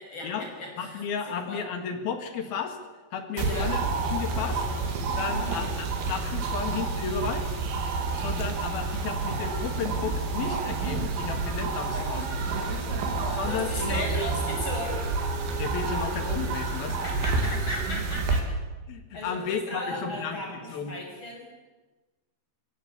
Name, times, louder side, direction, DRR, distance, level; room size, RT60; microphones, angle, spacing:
voice 1, 0.0-1.7 3.3-3.8 5.2-5.7 11.9-12.1 13.3-15.0 17.0-18.4 19.1-21.5, left 1 dB, 25° left, 0 dB, 6.5 m, -36 dB
voice 2, 0.8-2.8 3.1-3.8 4.1-4.6 5.2-7.5 8.2-12.3 13.3-14.0 15.6-17.0 18.9-20.4 20.7-20.9, left 6 dB, 60° left, 6 dB, 3.4 m, -33 dB
sound 1, 3.4-18.4, right 3 dB, 75° right, 4.9 m, -29 dB
24.5 x 16.5 x 8.3 m, 1.2 s
omnidirectional pair, 5.3 m